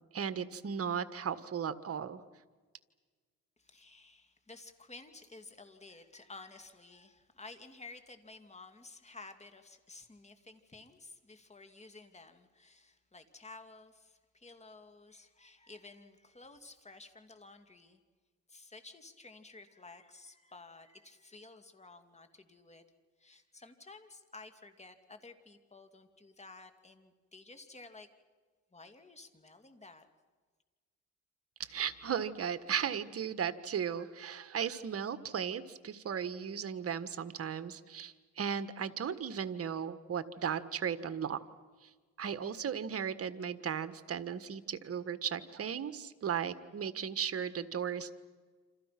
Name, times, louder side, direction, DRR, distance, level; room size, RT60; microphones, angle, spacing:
voice 1, 0.1-2.2 31.6-41.4 41.8-41.9 42.2-48.1, right 7 dB, 50° right, 12 dB, 1.6 m, -36 dB
voice 2, 3.6-18.0 18.5-22.8 23.2-28.1 28.7-30.0, left 3 dB, 20° left, 8 dB, 2.7 m, -53 dB
28.5 x 27.5 x 6.0 m, 1.4 s
cardioid pair, 90°, 30 cm